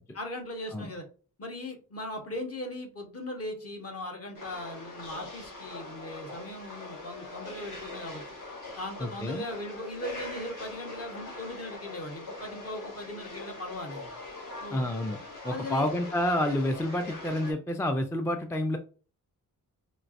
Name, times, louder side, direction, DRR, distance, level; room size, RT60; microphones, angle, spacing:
voice 1, 0.1-1.0 1.4-8.2 8.7-14.1 14.6-14.9 15.5-15.9, left 1 dB, 45° left, 3 dB, 1.1 m, -39 dB
sound 1, 4.3-17.5, left 2 dB, 60° left, 1.6 m, -42 dB
voice 2, 9.0-9.4 14.7-15.2 15.4-18.8, left 1 dB, 10° left, 6 dB, 0.3 m, -29 dB
4.4 x 3.2 x 2.5 m, 0.38 s
wide cardioid pair, 150°, 34 cm